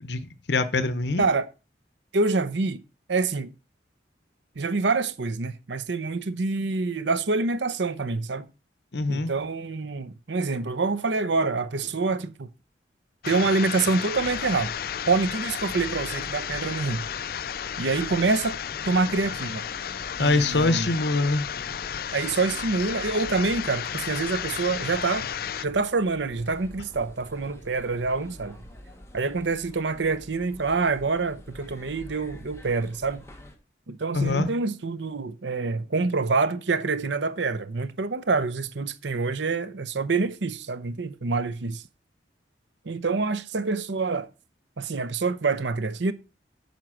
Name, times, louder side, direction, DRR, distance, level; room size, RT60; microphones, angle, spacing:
voice 1, 0.0-1.3 8.9-9.3 20.2-21.4 34.1-34.5, left 3 dB, 70° left, 0.9 m, -24 dB
voice 2, 1.2-1.5 2.1-2.8 3.1-3.5 4.6-8.5 9.1-12.5 13.3-14.7 15.1-17.1 17.8-18.6 18.8-19.6 20.2-20.9 22.1-25.3 25.6-28.6 29.1-33.2 33.9-41.8 42.8-44.3 44.8-46.1, right 3 dB, 75° right, 0.7 m, -26 dB
sound 1, 13.2-25.6, left 8 dB, 50° left, 0.4 m, -33 dB
sound 2, 14.1-33.6, equal, 15° left, 1.3 m, -46 dB
9.3 x 4.5 x 6.3 m
head